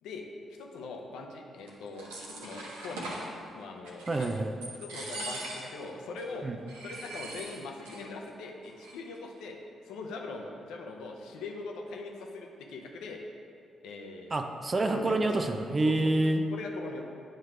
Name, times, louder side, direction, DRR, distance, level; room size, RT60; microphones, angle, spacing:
voice 1, 0.0-3.2 3.5-4.4 4.8-6.5 6.8-9.6 9.8-13.2 13.8-14.4 14.8-15.5 15.8-16.1 16.5-17.0, left 3 dB, 70° left, 1 dB, 0.6 m, -41 dB
sound 1, 1.7-3.3 3.8-4.4 4.6-5.8 6.2-6.3 6.7-8.0 8.3-8.4 8.6-9.2, right 1 dB, 80° right, 0.8 m, -41 dB
voice 2, 4.1-4.5 6.4-6.6 14.3-16.4, right 2 dB, 35° right, 6 dB, 0.5 m, -27 dB
8.8 x 3.2 x 4.8 m, 2.5 s
hypercardioid pair, 40°, 0 cm